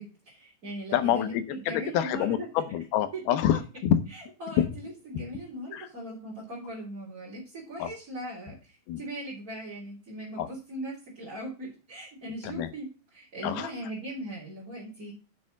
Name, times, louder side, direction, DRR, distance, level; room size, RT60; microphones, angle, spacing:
voice 1, 0.0-2.4 3.1-3.2 4.1-15.1, right 1 dB, 25° right, -6 dB, 3.2 m, -39 dB
voice 2, 0.9-4.0 5.7-5.9 7.8-7.9 8.9-9.0 10.4-10.5 12.4-12.7 13.4-13.7, left 11 dB, 85° left, 10 dB, 2.9 m, -27 dB
7.2 x 6.5 x 6.3 m, 0.34 s
omnidirectional pair, 4.3 m